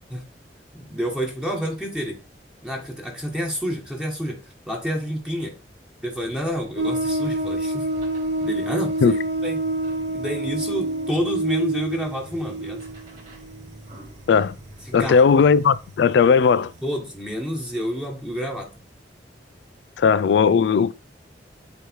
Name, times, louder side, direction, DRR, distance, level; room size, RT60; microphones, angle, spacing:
voice 1, 0.7-2.2 2.6-4.4 4.7-5.5 6.0-7.9 8.4-9.6 10.1-12.8 14.9-15.2 16.8-18.7, equal, 5° right, 1.3 m, -29 dB
sound 1, 6.0-15.9, equal, 40° right, 3.2 m, -46 dB
sound 2, 6.8-15.1 15.6-15.7 16.2-16.3, right 2 dB, 85° right, 0.9 m, -27 dB
voice 2, 14.9-16.7 20.0-20.9, left 6 dB, 75° left, 0.3 m, -17 dB
8.0 x 3.1 x 4.5 m
head